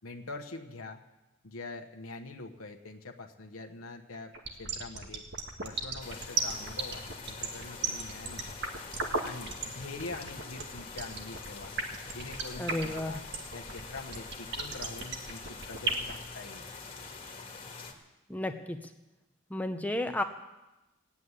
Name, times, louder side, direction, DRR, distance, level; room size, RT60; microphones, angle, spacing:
voice 1, 0.0-1.0 1.4-5.3 5.6-8.6 9.2-11.8 12.1-13.2 13.5-16.7, left 3 dB, 80° left, 3 dB, 1.1 m, -44 dB
sound 1, 4.3-16.1, right 4 dB, 55° right, 1.6 m, -34 dB
sound 2, 6.0-17.9, left 4 dB, 25° left, 1.8 m, -45 dB
voice 2, 12.6-13.2 18.3-18.8 19.5-20.2, left 1 dB, 5° left, 6 dB, 0.7 m, -32 dB
15.5 x 8.5 x 9.7 m, 1.0 s
head